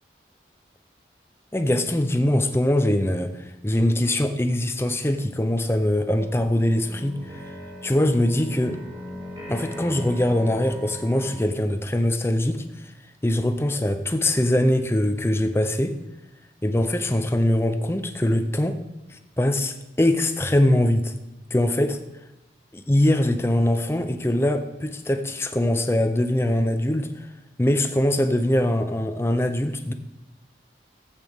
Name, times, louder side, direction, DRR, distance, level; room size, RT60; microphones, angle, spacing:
voice 1, 1.5-7.5 7.8-8.8 9.5-12.9 13.2-16.0 16.6-18.8 19.1-21.1 21.5-22.0 22.7-27.3 27.6-29.9, left 1 dB, 15° left, 8 dB, 0.6 m, -22 dB
sound 1, 5.8-11.4, equal, 30° right, 4.1 m, -39 dB
14.5 x 8.3 x 3.6 m, 0.94 s
head